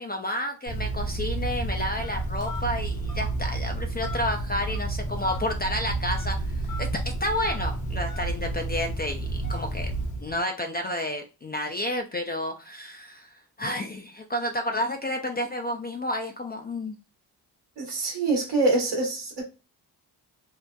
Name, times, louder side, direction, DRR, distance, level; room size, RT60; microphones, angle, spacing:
voice 1, 0.0-9.9 10.2-17.0, left 1 dB, 25° left, 0.3 m, -31 dB
Telephone, 0.7-10.4, right 2 dB, 45° left, 0.7 m, -30 dB
voice 2, 17.8-19.4, right 2 dB, 75° right, 1.1 m, -25 dB
2.8 x 2.1 x 2.2 m
supercardioid pair, 45°, 43 cm